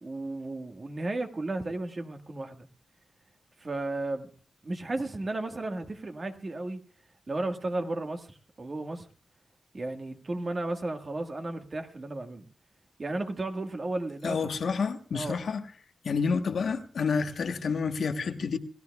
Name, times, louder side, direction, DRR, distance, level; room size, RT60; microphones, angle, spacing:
voice 1, 0.0-2.7 3.6-4.3 4.6-6.8 7.3-9.1 9.7-12.4 13.0-14.7 15.1-15.4, right 2 dB, 40° right, 1.6 m, -34 dB
voice 2, 14.2-15.6 16.0-18.6, left 5 dB, 75° left, 1.1 m, -29 dB
28.0 x 15.5 x 2.3 m
cardioid pair, 75°, 0 cm